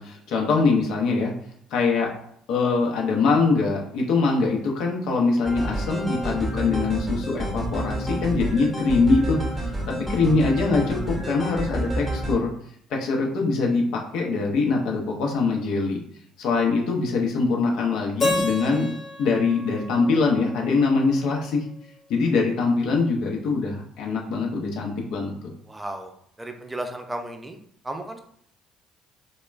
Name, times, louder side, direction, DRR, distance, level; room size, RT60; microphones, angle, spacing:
voice 1, 0.0-1.3 1.7-2.1 2.5-9.4 9.9-12.5 12.9-16.0 16.4-18.9 19.2-21.6 22.1-25.3, left 4 dB, 70° left, -1 dB, 0.6 m, -23 dB
sound 1, 5.5-12.3, right 1 dB, 5° left, 0.9 m, -29 dB
Keyboard (musical), 18.2-21.2, left 2 dB, 45° left, 0.9 m, -30 dB
voice 2, 25.7-26.1 26.4-27.6 27.8-28.2, right 1 dB, 15° right, 4 dB, 0.5 m, -34 dB
2.2 x 2.1 x 3.2 m, 0.67 s
hypercardioid pair, 65°, 0 cm